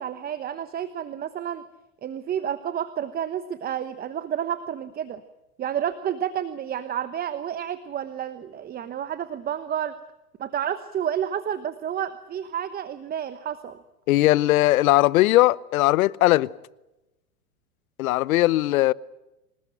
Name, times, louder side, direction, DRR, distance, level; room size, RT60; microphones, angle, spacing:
voice 1, 0.0-1.6 2.0-5.2 5.6-10.0 10.4-13.8, right 9 dB, 20° right, 1.0 m, -30 dB
voice 2, 14.1-16.5 18.0-18.9, left 17 dB, 65° left, 0.9 m, -19 dB
26.0 x 20.0 x 9.1 m
hypercardioid pair, 125°, 45 cm